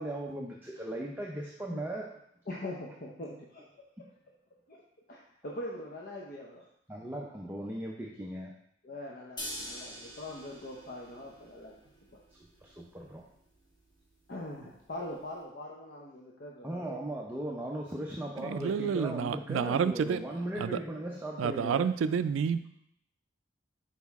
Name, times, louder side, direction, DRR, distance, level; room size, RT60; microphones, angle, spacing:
voice 1, 0.0-2.1 6.9-8.5 12.6-13.2 16.6-21.8, right 1 dB, 10° right, -2 dB, 0.5 m, -37 dB
voice 2, 2.5-3.7 4.7-4.8 5.1-6.7 8.8-11.7 14.3-17.0, left 1 dB, 50° left, -3 dB, 0.7 m, -42 dB
sound 1, 9.4-15.4, left 1 dB, 25° left, 1.4 m, -47 dB
voice 3, 18.4-20.2 20.5-20.8 21.4-22.7, right 6 dB, 90° right, 13 dB, 0.3 m, -29 dB
6.3 x 4.3 x 3.5 m, 0.72 s
head